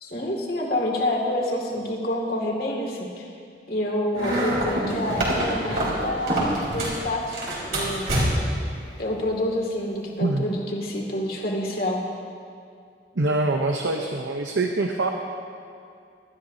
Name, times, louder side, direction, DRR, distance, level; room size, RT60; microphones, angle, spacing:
voice 1, 0.0-3.3 3.7-7.4 7.6-8.1 9.0-12.0, left 1 dB, 50° left, -1 dB, 2.3 m, -27 dB
sound 1, 4.1-7.0 7.3-8.6, right 1 dB, 55° right, 4.0 m, -25 dB
voice 2, 13.2-15.1, right 2 dB, 90° right, 3 dB, 0.8 m, -24 dB
24.0 x 13.0 x 2.8 m, 2.4 s
head